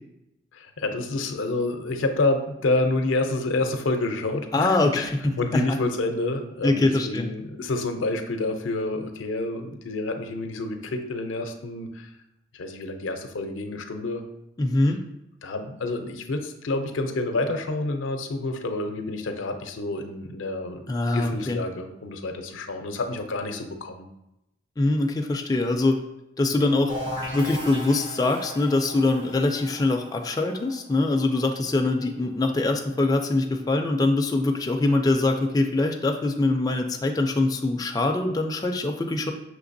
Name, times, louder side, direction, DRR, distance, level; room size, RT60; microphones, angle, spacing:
voice 1, 0.5-12.1 12.5-14.2 15.4-20.8 21.1-24.1, left 2 dB, 90° left, 6 dB, 0.5 m, -28 dB
voice 2, 4.5-5.2 5.5-5.6 6.6-7.3 14.6-15.0 20.9-21.6 24.8-26.0 26.4-26.9 27.3-39.3, left 2 dB, 20° left, 3 dB, 0.3 m, -23 dB
sound 1, 26.9-32.5, left 1 dB, 70° right, 1.5 m, -37 dB
5.9 x 3.1 x 2.6 m, 0.88 s
head